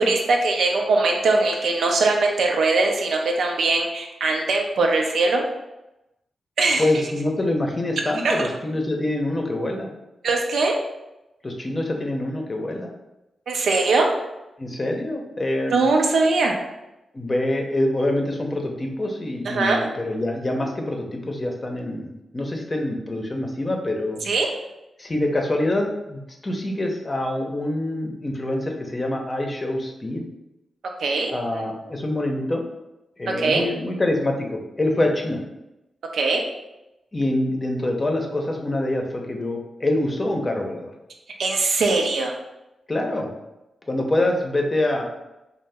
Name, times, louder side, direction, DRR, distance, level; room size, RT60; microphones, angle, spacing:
voice 1, 0.0-5.4 6.6-6.8 8.2-8.5 10.2-10.8 13.5-14.1 15.7-16.6 19.5-19.8 24.2-24.5 31.0-31.6 33.4-33.7 36.1-36.4 41.4-42.4, right 3 dB, 80° right, 1 dB, 0.4 m, -21 dB
voice 2, 6.8-9.9 11.4-12.9 14.6-15.8 17.1-24.2 25.0-30.3 31.3-32.6 33.2-35.4 37.1-40.9 42.9-43.3 43.9-45.0, left 1 dB, 35° left, 2 dB, 0.6 m, -25 dB
2.7 x 2.0 x 3.3 m, 0.94 s
supercardioid pair, 45°, 0 cm